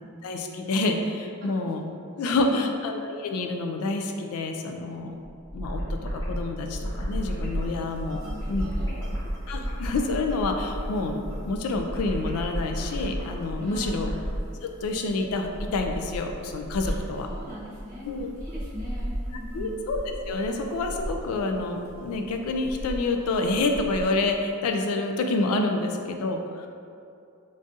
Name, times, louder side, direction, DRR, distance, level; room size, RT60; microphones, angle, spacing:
voice 1, 0.2-1.8 2.2-5.1 5.5-5.8 6.1-8.2 8.5-8.7 9.5-14.1 14.6-17.3 18.0-18.3 19.5-26.7, left 2 dB, 80° left, 4 dB, 0.3 m, -28 dB
voice 2, 2.2-2.7 8.2-9.2 13.6-14.1 16.8-17.0 17.3-19.7, equal, 40° right, -9 dB, 0.9 m, -41 dB
sound 1, 5.2-14.5, equal, 15° left, 0.5 m, -32 dB
sound 2, 6.6-24.4, equal, 70° right, 0.6 m, -39 dB
3.8 x 2.5 x 2.4 m, 2.5 s
head